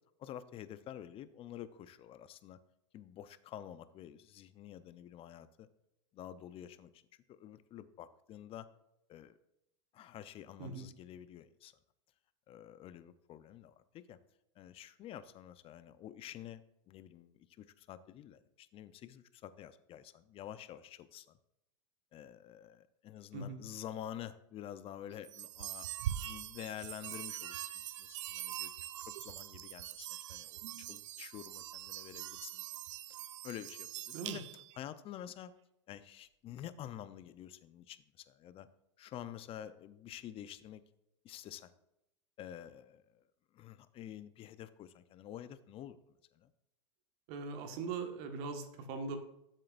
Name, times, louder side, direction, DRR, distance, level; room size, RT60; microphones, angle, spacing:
voice 1, 0.2-2.6 2.9-5.7 6.1-7.0 7.3-8.7 9.1-9.4 9.9-11.7 12.5-14.2 14.6-16.6 16.9-21.4 22.1-28.7 29.0-32.6 33.1-34.4 34.7-35.5 35.9-38.7 39.0-40.8 41.2-41.7 42.4-43.2 43.5-46.0 46.3-46.5, left 11 dB, 35° left, 14 dB, 0.7 m, -49 dB
voice 2, 23.3-23.6 34.1-34.4 47.3-49.2, right 4 dB, 60° right, 5 dB, 1.6 m, -40 dB
sound 1, 25.2-34.8, right 12 dB, 75° right, 0.6 m, -43 dB
12.5 x 7.5 x 2.6 m, 0.81 s
hypercardioid pair, 105°, 16 cm